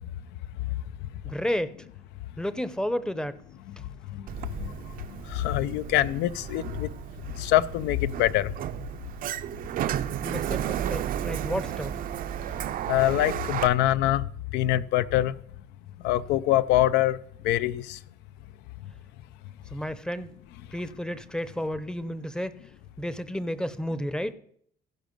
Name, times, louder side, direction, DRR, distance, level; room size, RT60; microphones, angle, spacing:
voice 1, 1.2-1.7 2.4-3.4 10.2-12.0 19.7-20.3 20.7-22.5 23.0-24.3, equal, 5° left, 0.6 m, -31 dB
Sliding door, 4.3-13.7, right 10 dB, 55° right, 0.5 m, -33 dB
voice 2, 5.3-6.9 7.4-8.5 12.9-14.2 14.5-15.3 16.0-17.2 17.4-18.0, left 14 dB, 90° left, 0.4 m, -24 dB
15.5 x 5.2 x 5.2 m
cardioid pair, 110°, 17 cm